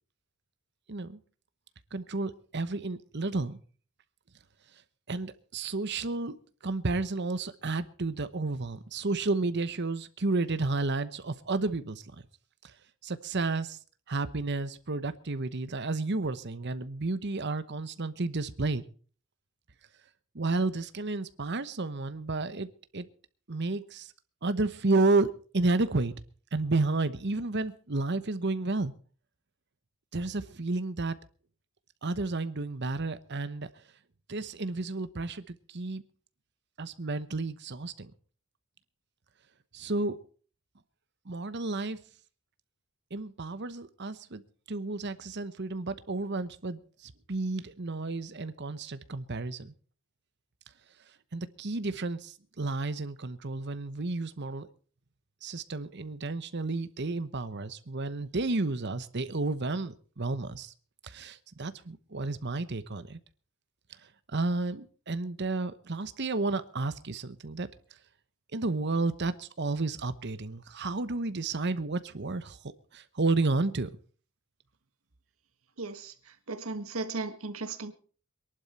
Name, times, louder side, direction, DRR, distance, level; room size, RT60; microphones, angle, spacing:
voice 1, 0.9-1.2 1.9-3.6 5.1-6.4 6.6-12.0 12.6-12.7 13.0-13.8 14.1-18.8 20.3-23.1 23.5-24.1 24.4-26.1 26.5-28.9 30.1-31.2 32.0-33.7 34.3-36.0 36.8-38.1 39.7-40.2 41.2-42.0 43.1-44.4 44.7-49.7 51.3-54.7 55.4-60.7 61.0-63.2 64.3-67.7 68.5-73.9, right 3 dB, 55° right, 1.0 m, -31 dB
voice 2, 75.8-76.1 76.5-77.9, right 3 dB, 80° right, 1.6 m, -36 dB
22.0 x 11.5 x 4.3 m
head